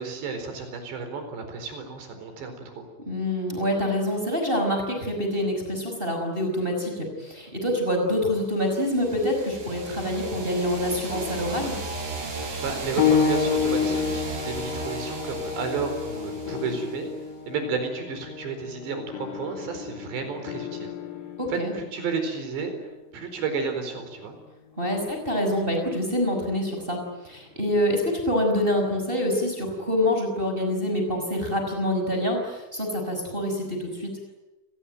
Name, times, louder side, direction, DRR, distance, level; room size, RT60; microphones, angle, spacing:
voice 1, 0.0-2.9 12.6-17.1 17.5-20.9 21.5-24.3, right 5 dB, 65° right, 7 dB, 6.4 m, -32 dB
voice 2, 3.1-11.8 21.4-21.7 24.8-34.2, left 1 dB, 10° right, 3 dB, 5.3 m, -26 dB
sound 1, 8.6-17.3, right 3 dB, 85° right, 10.5 m, -36 dB
sound 2, 11.1-11.9 13.8-14.6 16.5-17.3 19.1-21.8, left 9 dB, 80° left, 4.5 m, -39 dB
sound 3, 13.0-23.2 24.1-24.3 25.0-25.1, left 6 dB, 65° left, 1.8 m, -29 dB
28.5 x 21.0 x 9.1 m, 1.1 s
omnidirectional pair, 5.6 m